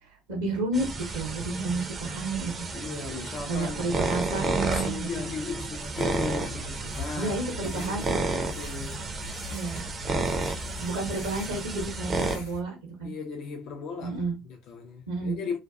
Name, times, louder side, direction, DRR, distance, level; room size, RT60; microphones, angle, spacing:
voice 1, 0.0-2.7 3.5-5.3 7.2-8.2 9.5-9.8 10.8-13.1 14.0-14.3 15.1-15.6, right 2 dB, 75° right, 0.8 m, -31 dB
sound 1, 0.7-12.4, right 3 dB, 35° right, 0.5 m, -32 dB
voice 2, 2.7-3.9 4.4-9.1 13.0-15.6, left 5 dB, 55° left, 0.4 m, -37 dB
sound 2, 5.6-12.6, left 7 dB, 75° left, 0.8 m, -43 dB
2.4 x 2.2 x 2.2 m
figure-of-eight pair, 55°, 0 cm